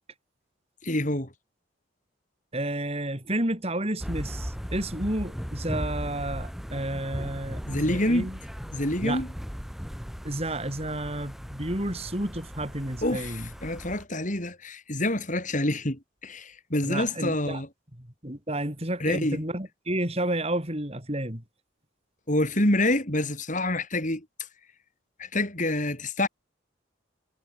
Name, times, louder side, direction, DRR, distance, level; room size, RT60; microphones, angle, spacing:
voice 1, 0.8-1.3 7.7-8.3 8.7-9.3 13.0-17.7 19.0-19.4 22.3-24.2 25.2-26.3, left 1 dB, 40° left, 6.6 m, -27 dB
voice 2, 2.5-8.4 9.0-9.2 10.2-13.5 16.8-17.6 18.0-21.4, right 1 dB, 30° right, 5.2 m, -31 dB
sound 1, 4.0-14.0, equal, ahead, 7.8 m, -37 dB
head